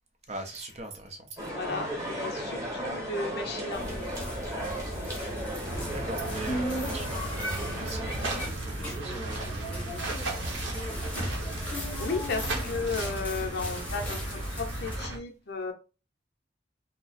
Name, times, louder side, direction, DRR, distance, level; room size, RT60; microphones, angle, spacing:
voice 1, 0.3-1.5 5.9-10.0 10.4-11.0, right 1 dB, 35° right, 0.6 m, -41 dB
sound 1, 1.4-8.5, equal, 15° right, 1.1 m, -35 dB
voice 2, 1.5-4.2 11.7-15.7, left 4 dB, 55° left, 0.6 m, -34 dB
sound 2, 3.7-15.0, equal, 10° left, 0.8 m, -37 dB
sound 3, 5.7-15.2, right 2 dB, 70° right, 0.9 m, -36 dB
2.8 x 2.0 x 4.0 m
head